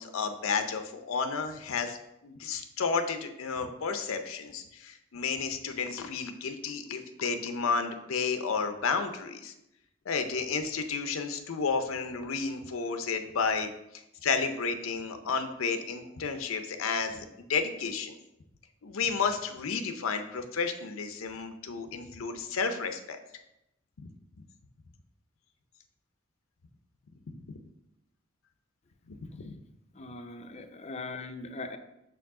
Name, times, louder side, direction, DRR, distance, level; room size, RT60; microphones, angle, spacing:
voice 1, 0.0-2.0 2.2-9.5 10.1-13.7 14.2-18.2 18.8-23.2 24.0-24.1 27.3-27.4 29.2-29.6, left 5 dB, 80° left, 8 dB, 0.6 m, -32 dB
voice 2, 29.9-31.8, left 3 dB, 35° left, 7 dB, 0.5 m, -40 dB
6.3 x 4.6 x 3.7 m, 0.84 s
head